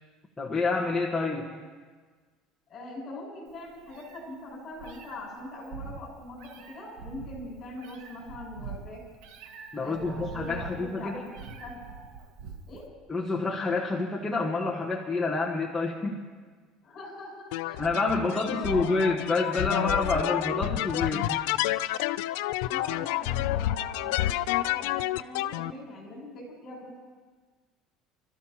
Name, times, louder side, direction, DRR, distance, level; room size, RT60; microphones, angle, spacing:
voice 1, 0.4-1.4 9.7-11.2 13.1-16.2 17.8-21.5, left 3 dB, 5° left, -3 dB, 1.3 m, -28 dB
voice 2, 2.7-9.1 9.8-11.2 11.6-11.8 12.7-13.0 16.8-17.8 18.1-19.1 19.7-20.3 22.6-27.0, left 2 dB, 35° left, -3 dB, 6.4 m, -42 dB
Meow, 3.5-12.9, right 5 dB, 70° right, 1.7 m, -44 dB
sound 1, 17.5-25.7, left 15 dB, 85° left, 0.4 m, -29 dB
29.5 x 13.5 x 2.9 m, 1.5 s
cardioid pair, 135°, 0 cm